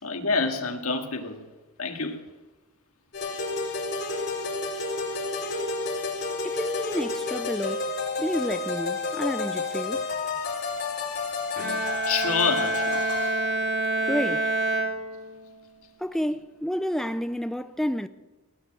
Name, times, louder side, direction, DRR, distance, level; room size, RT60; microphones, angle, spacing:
voice 1, 0.0-1.4 1.8-2.2 12.1-13.0, left 4 dB, 85° left, 2.0 m, -27 dB
sound 1, 3.1-13.4, left 3 dB, 50° left, 4.8 m, -30 dB
voice 2, 6.4-7.9 8.2-10.0 14.1-14.5 16.0-18.1, equal, ahead, 0.4 m, -30 dB
Bowed string instrument, 11.6-15.6, right 2 dB, 50° right, 2.9 m, -27 dB
18.0 x 10.0 x 7.8 m
head